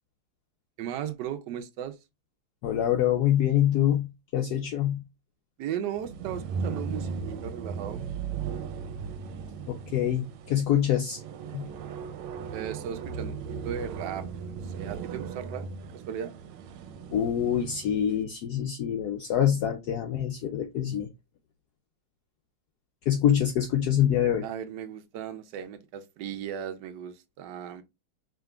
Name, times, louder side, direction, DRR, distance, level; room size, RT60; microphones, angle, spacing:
voice 1, 0.8-2.0 5.6-8.0 12.5-15.7 16.1-16.3 24.4-27.8, right 9 dB, 70° right, 1.1 m, -36 dB
voice 2, 2.6-5.0 9.7-11.2 11.5-11.7 17.1-21.1 23.1-24.4, left 10 dB, 80° left, 0.8 m, -25 dB
sound 1, 5.9-18.0, right 6 dB, 85° right, 1.4 m, -37 dB
4.9 x 2.9 x 2.4 m
omnidirectional pair, 2.2 m